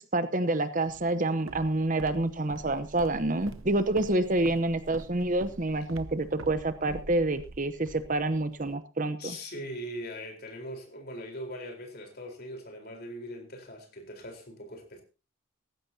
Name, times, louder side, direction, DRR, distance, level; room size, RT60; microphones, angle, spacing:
voice 1, 0.0-9.3, right 2 dB, 40° right, 0.9 m, -28 dB
Walk footsteps, 0.9-8.7, right 2 dB, 75° right, 0.8 m, -46 dB
voice 2, 9.2-15.0, equal, 45° left, 4.1 m, -41 dB
18.0 x 15.0 x 2.8 m
head